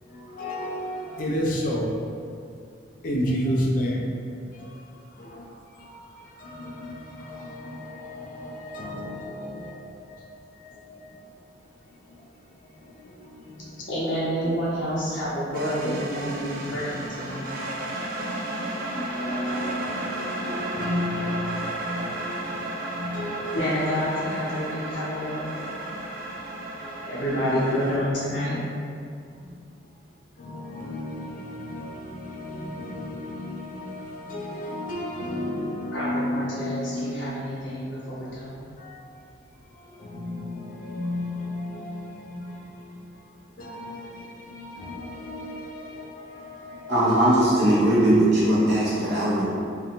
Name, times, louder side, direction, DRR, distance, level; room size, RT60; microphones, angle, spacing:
voice 1, 0.0-1.9 3.0-4.2 4.5-4.8 5.1-5.5 5.7-10.2 10.5-11.2 12.1-12.2 12.8-13.8 18.2-23.6 24.5-24.8 25.7-25.8 26.8-27.0 29.4-29.6 30.4-37.1 38.8-39.1 39.7-43.1 43.6-47.2, left 1 dB, 45° left, -3 dB, 0.3 m, -33 dB
voice 2, 13.9-17.5 23.5-25.7 27.1-28.6 35.9-38.6, equal, 80° left, -9 dB, 0.7 m, -28 dB
sound 1, 15.5-28.0, right 1 dB, 50° right, 0.3 m, -33 dB
voice 3, 46.9-49.5, right 1 dB, 65° right, -9 dB, 0.9 m, -20 dB
2.4 x 2.1 x 2.9 m, 2.3 s
head